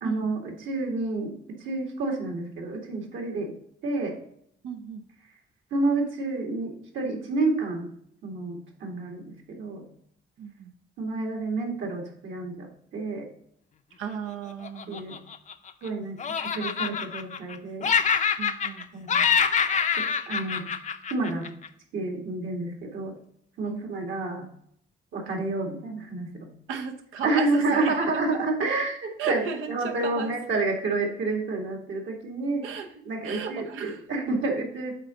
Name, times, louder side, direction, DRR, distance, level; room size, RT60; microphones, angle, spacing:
voice 1, 0.0-1.3 1.6-3.5 3.8-4.1 5.7-7.9 8.2-9.9 11.0-13.3 14.9-15.2 15.8-17.9 18.9-19.3 20.0-20.7 21.1-21.5 21.9-23.1 23.6-24.5 25.1-26.5 27.2-29.4 29.7-32.6 33.0-34.9, right 3 dB, 70° right, 0 dB, 2.1 m, -29 dB
voice 2, 4.6-5.1 10.4-10.7 14.0-15.1 18.4-18.9 23.6-23.9 26.7-28.4 29.2-30.3 32.6-32.9 33.2-34.0, right 6 dB, 90° right, 5 dB, 1.0 m, -34 dB
Laughter, 14.6-15.9 16.2-17.6 17.8-18.8 19.1-21.7, left 6 dB, 40° left, 0.6 m, -25 dB
8.2 x 3.7 x 5.0 m, 0.68 s
cardioid pair, 90°, 20 cm